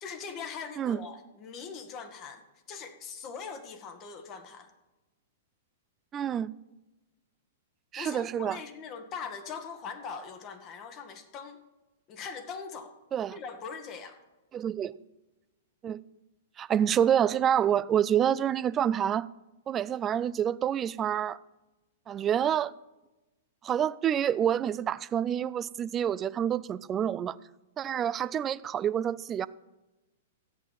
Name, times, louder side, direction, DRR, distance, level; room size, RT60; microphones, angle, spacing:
voice 1, 0.0-4.7 7.9-11.6 12.1-12.9 13.3-14.2, left 5 dB, 35° left, 1.6 m, -41 dB
voice 2, 6.1-6.5 7.9-8.6 13.1-13.4 14.5-14.9 15.8-16.0 16.6-19.3 19.7-21.4 22.1-22.7 23.6-27.4 27.8-29.5, right 9 dB, 25° right, 0.4 m, -27 dB
13.0 x 8.7 x 5.6 m
figure-of-eight pair, 105°, 0 cm